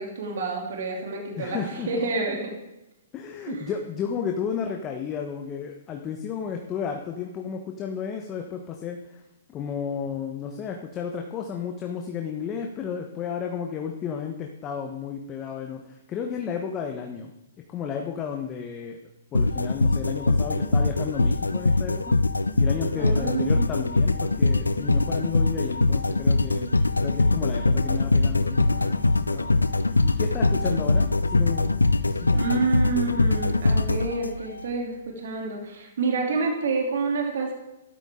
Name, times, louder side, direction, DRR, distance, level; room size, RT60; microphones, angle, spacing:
voice 1, 0.0-1.6 1.9-2.5 3.5-3.7 23.0-23.7 32.3-37.5, right 4 dB, 60° right, 0 dB, 3.2 m, -28 dB
voice 2, 1.4-2.0 2.3-2.4 3.1-9.2 9.5-17.3 17.7-19.0 19.3-22.2 22.6-31.8 32.1-32.5, left 7 dB, 25° left, 3 dB, 1.1 m, -33 dB
sound 1, 19.3-34.6, left 2 dB, 90° left, 0.6 m, -22 dB
13.0 x 12.0 x 3.8 m, 0.93 s
figure-of-eight pair, 120°, 0 cm